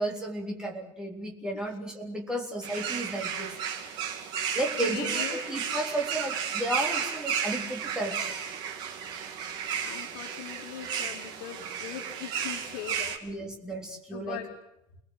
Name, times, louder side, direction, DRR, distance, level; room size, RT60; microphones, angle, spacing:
voice 1, 0.0-3.5 4.5-8.3 13.2-14.5, right 1 dB, 5° right, 0 dB, 3.8 m, -33 dB
sound 1, 2.6-13.2, right 7 dB, 40° right, 2.9 m, -33 dB
voice 2, 4.8-5.4 9.8-13.1 14.1-14.5, left 10 dB, 70° left, 1 dB, 3.1 m, -40 dB
30.0 x 20.0 x 8.0 m, 0.83 s
cardioid pair, 180°, 11 cm